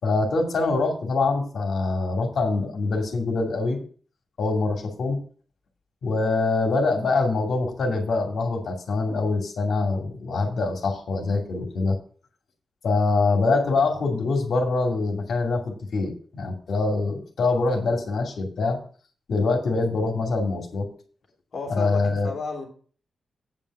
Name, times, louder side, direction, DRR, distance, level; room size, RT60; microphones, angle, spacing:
voice 1, 0.0-3.8 4.4-5.2 6.0-12.0 12.8-18.8 19.3-20.9 21.7-22.3, left 3 dB, 65° left, 2 dB, 2.5 m, -24 dB
voice 2, 21.5-22.7, left 4 dB, 45° left, 0 dB, 3.2 m, -33 dB
9.0 x 5.4 x 6.0 m, 0.43 s
wide cardioid pair, 145°, 0 cm